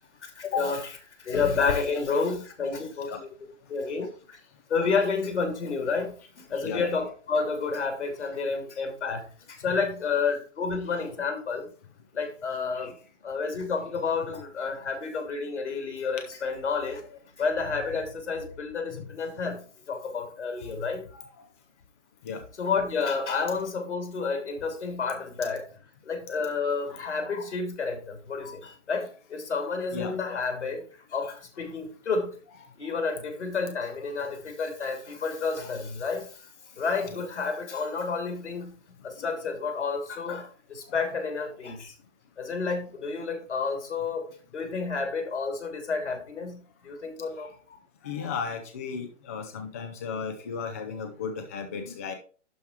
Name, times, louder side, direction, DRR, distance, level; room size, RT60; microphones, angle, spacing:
voice 1, 0.2-3.3 3.7-4.4 4.7-11.7 12.1-13.0 13.2-17.0 17.4-21.1 22.6-25.7 26.0-32.4 32.8-36.5 36.8-38.7 39.0-41.9 42.4-47.5, left 4 dB, 65° left, 2.9 m, -30 dB
voice 2, 6.6-7.0 12.8-12.9 18.9-19.0 21.2-21.3 22.2-22.4 26.9-27.2 29.9-30.2 39.2-39.3 47.4-47.5 48.0-52.1, left 5 dB, 15° left, 0.4 m, -35 dB
11.5 x 4.6 x 4.4 m
figure-of-eight pair, 130°, 37 cm